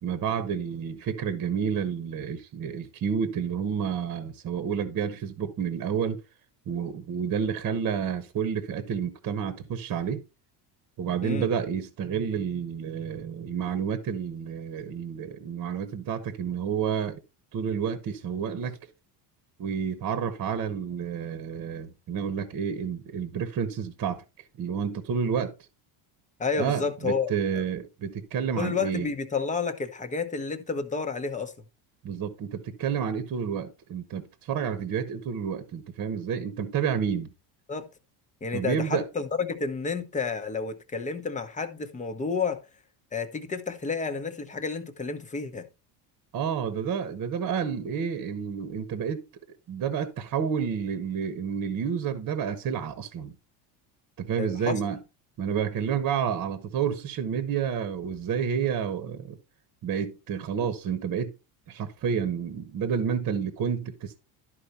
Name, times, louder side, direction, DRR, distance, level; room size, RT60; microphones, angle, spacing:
voice 1, 0.0-6.2 6.7-10.2 11.0-17.2 17.5-18.8 19.6-24.2 24.6-25.5 26.6-29.1 32.0-37.3 38.5-39.1 46.3-49.2 49.7-53.3 54.2-55.0 55.4-59.4 59.8-61.3 61.7-64.2, right 7 dB, 40° right, 1.2 m, -30 dB
voice 2, 26.4-27.6 28.6-31.5 37.7-37.9 38.4-42.6 43.1-45.7 54.4-54.8, left 5 dB, 15° left, 1.0 m, -30 dB
12.0 x 4.6 x 4.2 m
cardioid pair, 145°, 47 cm